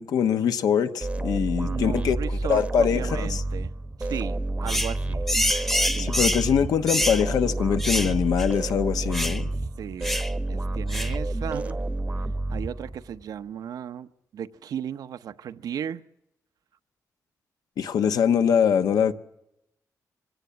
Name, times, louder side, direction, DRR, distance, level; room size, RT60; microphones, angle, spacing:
voice 1, 0.0-2.2 2.5-3.4 6.0-9.5 17.8-19.1, left 8 dB, 90° left, 1.1 m, -23 dB
sound 1, 1.0-13.2, right 2 dB, 20° right, 0.8 m, -29 dB
voice 2, 1.5-3.7 4.0-5.2 5.9-6.1 9.8-10.2 10.5-11.8 12.5-16.0, right 9 dB, 80° right, 0.8 m, -35 dB
sound 2, 4.7-4.9 5.3-6.5 6.9-7.2 7.8-8.1 8.4-8.5 9.1-9.4 10.0-10.3 10.9-11.2, left 1 dB, 5° left, 0.9 m, -26 dB
24.0 x 17.0 x 8.4 m
wide cardioid pair, 135°, 6 cm